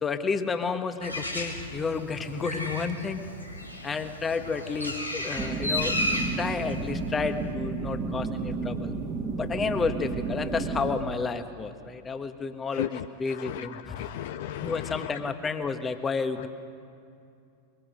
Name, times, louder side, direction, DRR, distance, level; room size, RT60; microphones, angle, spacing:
voice 1, 0.0-3.2 3.8-6.0 6.3-8.9 9.4-14.1 14.6-16.5, left 5 dB, 20° left, 9 dB, 1.3 m, -31 dB
Bird, 1.0-7.5, left 1 dB, 85° left, 1.9 m, -34 dB
sound 1, 5.4-11.0, right 4 dB, 20° right, 1.7 m, -32 dB
voice 2, 13.4-14.8, left 13 dB, 55° left, 11 dB, 0.5 m, -35 dB
23.5 x 23.0 x 6.5 m, 2.5 s
figure-of-eight pair, 90°, 0 cm